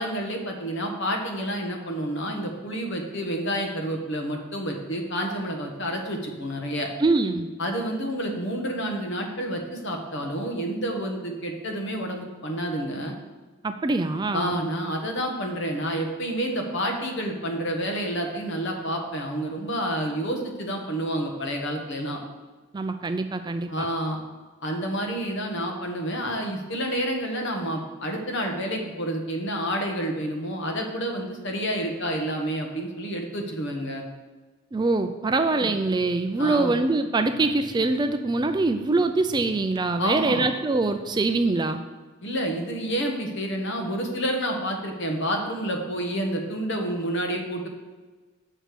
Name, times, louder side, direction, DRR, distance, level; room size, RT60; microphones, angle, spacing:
voice 1, 0.0-6.9 7.6-13.2 14.3-22.2 23.7-24.2 24.6-34.0 35.6-35.7 36.4-36.7 40.0-40.5 42.2-47.7, equal, 60° left, 3 dB, 1.2 m, -29 dB
voice 2, 7.0-7.5 13.6-14.6 22.7-23.9 34.7-41.8, right 3 dB, 20° right, 8 dB, 0.3 m, -24 dB
6.5 x 4.6 x 6.7 m, 1.3 s
head